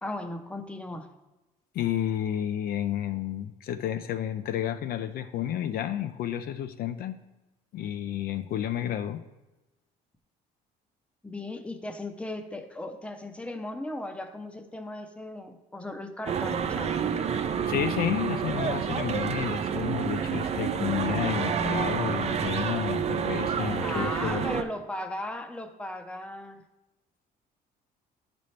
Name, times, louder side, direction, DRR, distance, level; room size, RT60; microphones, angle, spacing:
voice 1, 0.0-1.1 11.2-16.9 23.8-26.6, left 1 dB, 5° left, 6 dB, 0.6 m, -37 dB
voice 2, 1.7-7.2 7.7-9.2 17.6-24.5, left 10 dB, 60° left, 9 dB, 0.4 m, -31 dB
sound 1, 16.3-24.6, right 7 dB, 40° right, 0.5 m, -29 dB
10.5 x 4.2 x 3.2 m, 1.0 s
cardioid pair, 110°, 17 cm